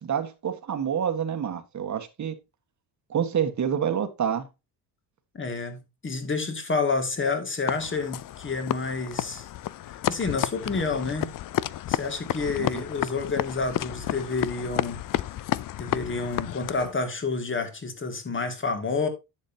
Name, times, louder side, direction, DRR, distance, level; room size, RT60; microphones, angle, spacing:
voice 1, 0.0-2.3 3.1-4.5 12.6-12.8, right 8 dB, 40° right, 1.6 m, -28 dB
voice 2, 5.3-9.5 10.1-11.3 11.9-15.0 15.8-19.1, left 4 dB, 25° left, 2.4 m, -29 dB
sound 1, 7.7-16.9, left 13 dB, 45° left, 0.5 m, -31 dB
10.5 x 7.3 x 2.8 m
cardioid pair, 110°, 45 cm